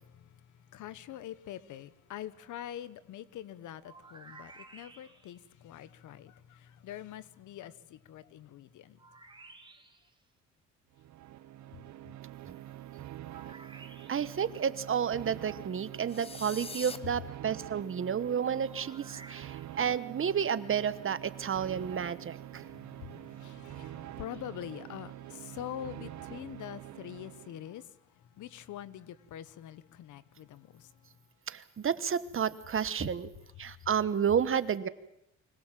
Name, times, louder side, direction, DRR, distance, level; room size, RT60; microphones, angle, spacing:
voice 1, 0.7-9.0 22.5-27.9 28.4-30.9, left 11 dB, 80° left, 1.1 m, -45 dB
sound 1, 3.8-5.5 9.0-10.2 13.3-14.5 18.6-20.0, right 3 dB, 15° right, 2.5 m, -53 dB
sound 2, 10.9-27.8, right 13 dB, 65° right, 0.7 m, -46 dB
voice 2, 14.1-22.6 31.5-33.3 33.6-34.9, right 7 dB, 45° right, 1.2 m, -31 dB
sound 3, 16.1-17.0, left 3 dB, 20° left, 1.0 m, -42 dB
24.5 x 18.0 x 7.5 m
cardioid pair, 90°, 30 cm